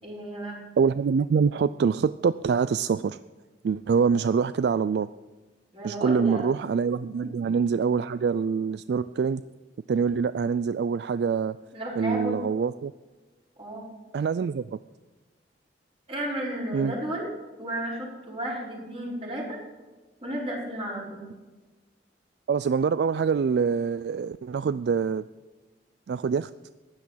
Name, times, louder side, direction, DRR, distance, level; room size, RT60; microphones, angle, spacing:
voice 1, 0.0-0.6 5.7-6.4 7.1-7.4 11.7-12.4 13.6-13.8 16.1-17.3 17.6-19.6 20.2-21.3, right 1 dB, 35° right, -4 dB, 5.0 m, -33 dB
voice 2, 0.8-3.2 3.6-5.1 5.8-9.4 9.9-11.6 12.0-12.9 14.1-14.8 16.7-16.9 22.5-25.2 26.1-26.5, right 6 dB, 65° right, 14 dB, 0.3 m, -25 dB
15.5 x 10.5 x 5.8 m, 1.3 s
head